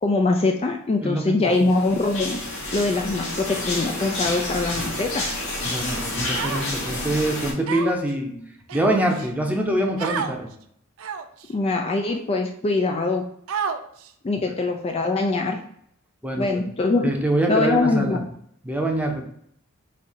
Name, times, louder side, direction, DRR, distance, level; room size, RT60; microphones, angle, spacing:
voice 1, 0.0-2.4 2.7-5.4 11.5-13.2 14.2-15.6 16.4-17.1 17.5-18.3, left 3 dB, 30° left, 3 dB, 0.4 m, -23 dB
voice 2, 1.0-1.7 5.6-8.4 8.7-10.5 16.2-16.6 17.0-18.2 18.6-19.2, right 1 dB, 5° right, 1 dB, 0.7 m, -24 dB
sound 1, 1.6-7.5, left 1 dB, 85° left, 1.8 m, -29 dB
Human voice, 6.3-6.9 7.7-8.1 8.7-9.3 10.0-10.3 11.0-11.4 12.1-12.2 13.5-14.1, right 6 dB, 75° right, 0.4 m, -29 dB
4.2 x 2.6 x 4.8 m, 0.68 s
head